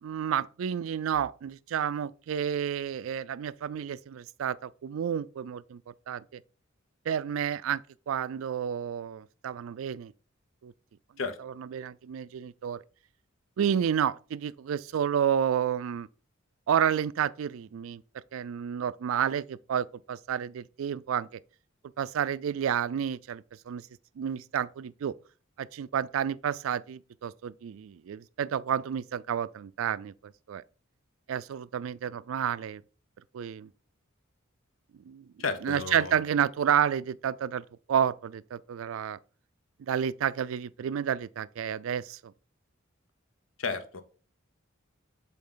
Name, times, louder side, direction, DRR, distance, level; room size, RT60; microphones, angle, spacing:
voice 1, 0.0-6.4 7.1-7.8 8.1-10.1 10.6-10.7 11.4-12.8 13.6-16.1 16.7-18.0 18.3-21.4 22.0-23.9 24.2-25.1 25.6-30.6 31.3-32.8 33.3-33.7 35.1-35.3 35.6-37.6 37.9-39.2 39.8-42.3, right 8 dB, 80° right, 0.3 m, -30 dB
voice 2, 35.4-36.2 43.6-44.0, left 4 dB, 70° left, 0.9 m, -33 dB
7.4 x 3.8 x 3.8 m
head